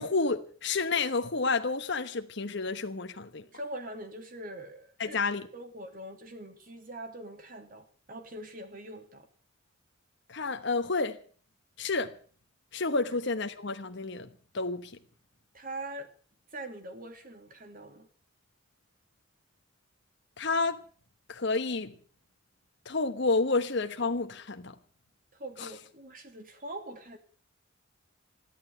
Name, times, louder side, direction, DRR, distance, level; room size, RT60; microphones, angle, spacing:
voice 1, 0.0-3.4 5.0-5.5 10.3-11.2 11.8-12.1 12.7-14.3 14.5-14.9 20.4-20.8 21.3-21.9 22.9-24.7 25.6-25.7, left 3 dB, 60° left, 1.1 m, -30 dB
voice 2, 3.5-5.2 5.5-9.3 13.1-13.2 15.5-16.1 16.5-18.1 25.3-27.2, right 1 dB, 45° right, 2.8 m, -43 dB
14.0 x 11.5 x 8.0 m
head